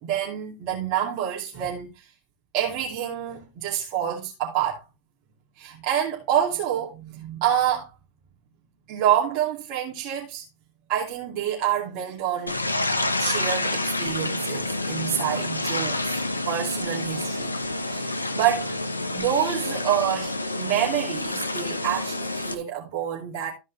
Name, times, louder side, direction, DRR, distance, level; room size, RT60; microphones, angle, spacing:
voice 1, 0.0-2.0 2.5-4.8 5.6-7.9 8.9-10.4 10.9-12.6 13.2-16.2 16.5-17.5 17.9-18.8 19.1-23.5, right 10 dB, 45° right, 2.7 m, -27 dB
sound 1, 12.5-22.5, left 2 dB, 90° left, 1.0 m, -28 dB
14.0 x 5.3 x 3.4 m
figure-of-eight pair, 90°, 0 cm